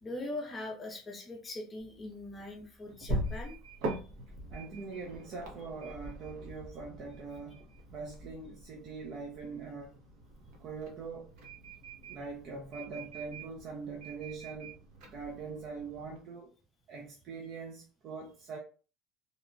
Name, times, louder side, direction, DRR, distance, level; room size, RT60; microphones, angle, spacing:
voice 1, 0.0-3.6, left 2 dB, 15° left, 0.6 m, -41 dB
sound 1, 1.8-16.2, right 1 dB, 70° right, 0.8 m, -43 dB
voice 2, 4.5-10.0 10.6-11.4 12.1-14.8 15.1-16.5 16.9-18.6, right 4 dB, 45° right, 0.4 m, -43 dB
2.8 x 2.1 x 2.4 m
cardioid pair, 160°, 0 cm